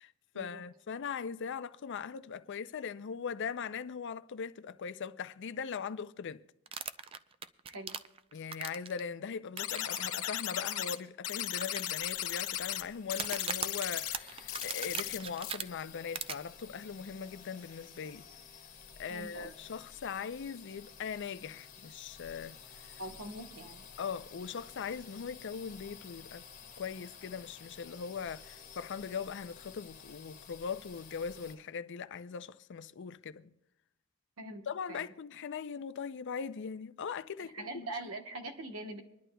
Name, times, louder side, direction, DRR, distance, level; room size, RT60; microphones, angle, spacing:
voice 1, 0.0-6.4 8.3-18.3 19.0-22.6 24.0-26.4 26.8-33.5 34.7-37.7, left 6 dB, 60° left, 0.4 m, -40 dB
sound 1, 6.7-9.0 9.6-10.0 10.2-10.3 10.9-11.0 11.6-12.4 13.1-15.6 16.1-16.3, right 7 dB, 25° right, 0.4 m, -39 dB
voice 2, 7.6-8.0 19.1-19.5 23.0-23.9 34.4-35.1 37.4-39.0, right 2 dB, 75° right, 1.0 m, -43 dB
sound 2, 9.6-11.0 11.2-12.8 13.1-14.1 14.5-15.2 15.4-15.5, left 12 dB, 85° left, 0.8 m, -36 dB
sound 3, 12.0-31.6, left 6 dB, 35° left, 1.4 m, -53 dB
25.0 x 11.0 x 2.2 m
head